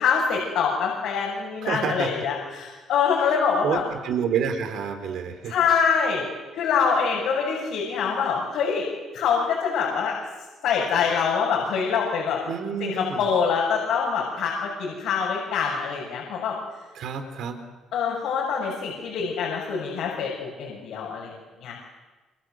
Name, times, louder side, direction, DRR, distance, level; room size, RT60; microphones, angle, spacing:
voice 1, 0.0-3.8 5.5-6.3 6.5-8.9 9.1-10.2 10.6-12.4 12.8-16.6 17.9-21.3 21.6-21.8, left 6 dB, 75° left, -3 dB, 6.7 m, -25 dB
voice 2, 1.6-2.2 3.6-5.5 12.5-13.2 17.0-17.6, right 7 dB, 70° right, 7 dB, 4.1 m, -28 dB
27.0 x 25.0 x 7.9 m, 1.2 s
cardioid pair, 135°, 0 cm